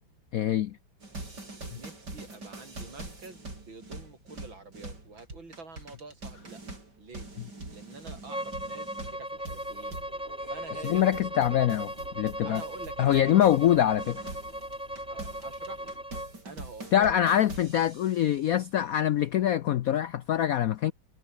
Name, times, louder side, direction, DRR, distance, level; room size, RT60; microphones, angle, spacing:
voice 1, 0.3-0.8 10.8-12.6 13.0-14.2 16.9-20.9, left 11 dB, 85° left, 0.7 m, -24 dB
sound 1, 1.0-13.7 14.0-18.4, right 2 dB, 55° right, 6.8 m, -44 dB
voice 2, 1.7-6.6 7.0-7.3 7.7-10.0 10.4-11.2 12.4-13.7 15.0-15.9 16.4-17.2, right 3 dB, 70° right, 5.8 m, -47 dB
Bowed string instrument, 8.3-16.3, equal, 5° right, 1.2 m, -38 dB
sound 2, 9.3-16.0, right 2 dB, 30° right, 4.5 m, -52 dB
omnidirectional pair, 2.2 m